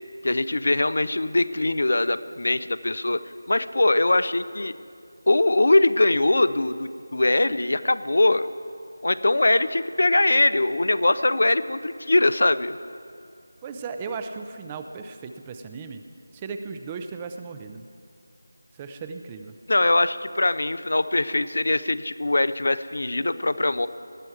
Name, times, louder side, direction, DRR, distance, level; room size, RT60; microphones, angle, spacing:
voice 1, 0.2-3.2 3.5-4.7 5.3-8.5 9.0-12.8 19.7-23.9, left 2 dB, 65° left, 14 dB, 0.5 m, -22 dB
voice 2, 13.6-16.0 16.3-17.8 18.7-19.6, right 5 dB, 15° right, 7 dB, 0.5 m, -36 dB
18.5 x 12.0 x 4.7 m, 2.4 s
figure-of-eight pair, 165°, 0 cm